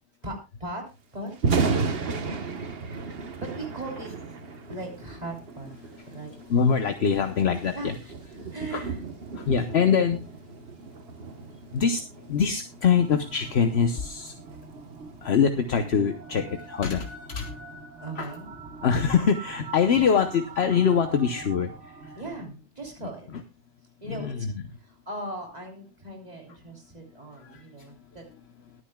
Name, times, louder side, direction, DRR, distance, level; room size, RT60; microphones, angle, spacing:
voice 1, 0.2-0.8 1.1-1.7 3.4-4.1 4.7-5.7 6.1-6.7 7.7-7.9 8.3-9.0 15.2-15.3 18.0-18.8 19.9-20.3 22.2-23.3 24.0-24.5 24.8-28.2, right 2 dB, 35° right, 1 dB, 3.4 m, -39 dB
Thunder, 1.3-15.4, right 4 dB, 60° right, 1.3 m, -34 dB
voice 2, 6.5-7.9 8.7-8.8 9.3-10.2 11.7-14.4 15.2-17.6 18.2-18.3 18.8-22.2 24.1-24.5 27.4-27.6, left 6 dB, 65° left, 7 dB, 1.1 m, -24 dB
sound 1, 12.9-22.4, right 4 dB, 85° right, 1.7 m, -44 dB
22.0 x 9.6 x 2.3 m, 0.27 s
omnidirectional pair, 1.2 m